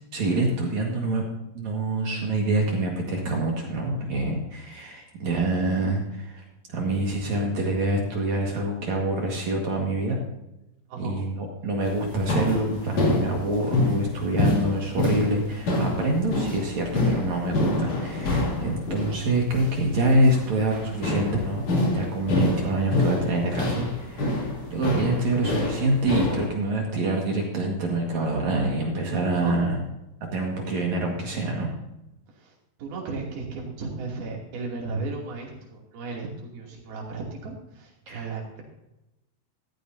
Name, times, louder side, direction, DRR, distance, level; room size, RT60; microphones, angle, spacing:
voice 1, 0.1-1.2 1.5-6.4 6.7-10.2 11.0-21.6 21.9-24.4 24.7-29.8 30.3-31.7 38.1-38.3, right 2 dB, 55° right, 0 dB, 2.8 m, -26 dB
sound 1, 11.8-26.5, left 1 dB, 45° left, 3.5 m, -26 dB
voice 2, 32.3-38.6, right 3 dB, 75° right, -1 dB, 4.6 m, -35 dB
14.5 x 14.0 x 2.7 m, 0.94 s
omnidirectional pair, 4.4 m